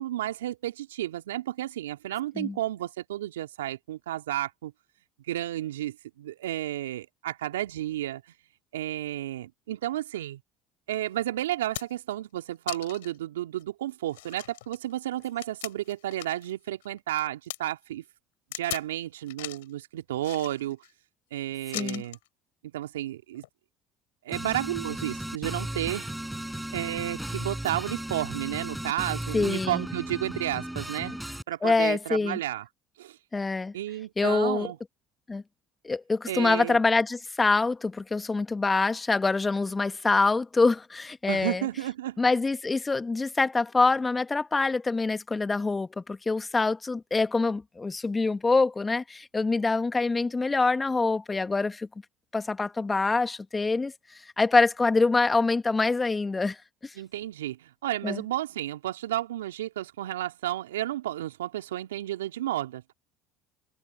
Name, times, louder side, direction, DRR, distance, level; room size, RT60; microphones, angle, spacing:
voice 1, 0.0-4.7 5.3-8.2 8.7-10.4 10.9-18.0 18.6-20.8 21.3-22.2 22.7-23.4 24.2-26.1 26.7-31.2 31.5-32.7 33.0-33.2 33.7-34.8 36.3-36.8 41.3-42.2 57.0-62.9, right 13 dB, 80° right, 2.6 m, -32 dB
sound 1, 10.9-11.0 11.5-12.1 12.7-13.2 13.6-13.7 14.1-16.5 16.8-17.6 18.5-18.9 19.3-19.7 20.2-20.9 21.7-22.3 23.3-23.5, left 19 dB, 75° left, 6.6 m, -39 dB
sound 2, 24.3-31.4, right 1 dB, 5° right, 6.0 m, -35 dB
voice 2, 29.3-29.8 31.6-32.4 33.3-33.7 34.2-34.7 35.3-35.4 35.8-41.7 42.2-51.9 52.3-53.9 54.4-56.6 56.8-56.9 58.0-58.2, left 3 dB, 20° left, 1.7 m, -25 dB
hypercardioid pair, 65°, 0 cm